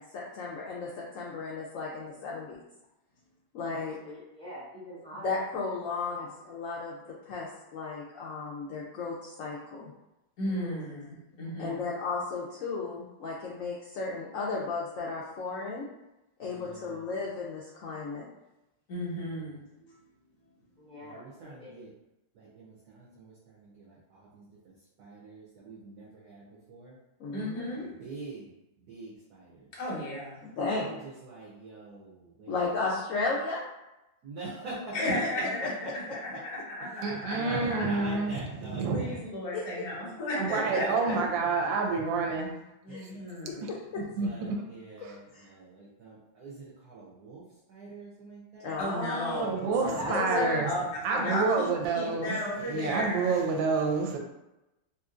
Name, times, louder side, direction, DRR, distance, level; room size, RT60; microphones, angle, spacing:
voice 1, 0.1-2.7 3.5-4.0 5.2-7.0 7.3-9.9 11.6-15.9 16.4-18.3 27.2-27.6 30.6-30.9 32.5-33.6 35.0-35.1 36.1-36.2 39.5-39.8 42.9-44.0 45.0-45.5 48.6-49.4 49.8-50.7, left 3 dB, 85° left, -4 dB, 0.7 m, -34 dB
voice 2, 3.8-5.3 6.1-6.3 10.5-10.9 11.4-11.9 20.8-21.8 49.6-50.5 50.8-51.2, equal, 10° left, -8 dB, 0.3 m, -44 dB
voice 3, 10.4-11.8 18.9-19.9 27.3-27.9 29.8-30.4 34.9-38.1 38.9-41.2 42.8-43.7 48.8-49.7 50.3-53.3, left 1 dB, 60° left, -6 dB, 1.7 m, -34 dB
voice 4, 16.4-17.3 19.0-19.6 21.0-21.9 22.3-27.0 27.6-28.5 28.9-29.7 30.6-33.0 34.2-36.2 36.8-39.2 40.4-42.2 42.9-43.0 44.0-47.4 47.7-48.8 49.6-50.4, right 3 dB, 65° right, -6 dB, 1.2 m, -45 dB
voice 5, 37.0-39.2 40.4-42.5 43.6-43.7 44.2-44.6 49.3-50.7 51.0-52.3 52.7-54.2, right 4 dB, 85° right, 2 dB, 1.3 m, -28 dB
3.5 x 2.8 x 2.4 m, 0.94 s
omnidirectional pair, 2.0 m